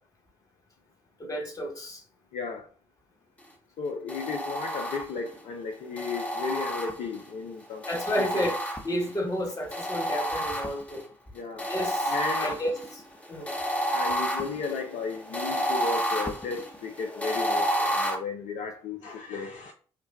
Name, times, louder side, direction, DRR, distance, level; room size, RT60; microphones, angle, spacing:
voice 1, 1.2-2.0 7.9-8.5 8.8-11.0 11.7-13.0 13.3-13.5, equal, 25° left, 1.3 m, -31 dB
voice 2, 2.3-2.7 3.8-8.5 11.3-11.7 12.1-12.5 13.9-19.7, left 4 dB, 60° left, 0.5 m, -34 dB
sound 1, 4.1-5.3 6.0-7.3 7.8-9.2 9.7-11.0 11.6-18.1, equal, 10° left, 0.9 m, -30 dB
5.6 x 2.2 x 2.3 m
hypercardioid pair, 45°, 14 cm